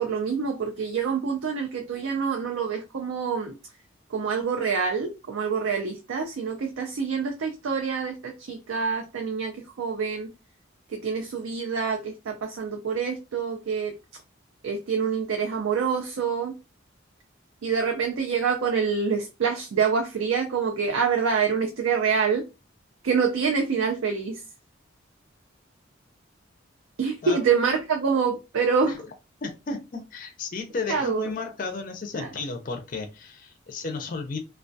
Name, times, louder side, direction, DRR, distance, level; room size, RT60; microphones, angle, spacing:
voice 1, 0.0-3.6 4.1-10.3 10.9-13.9 14.6-16.5 17.6-22.4 23.0-24.4 27.0-28.9 30.9-31.3 32.2-32.3, right 6 dB, 85° right, 0.4 m, -26 dB
voice 2, 29.4-34.4, left 4 dB, 40° left, 0.4 m, -33 dB
2.2 x 2.2 x 2.5 m
head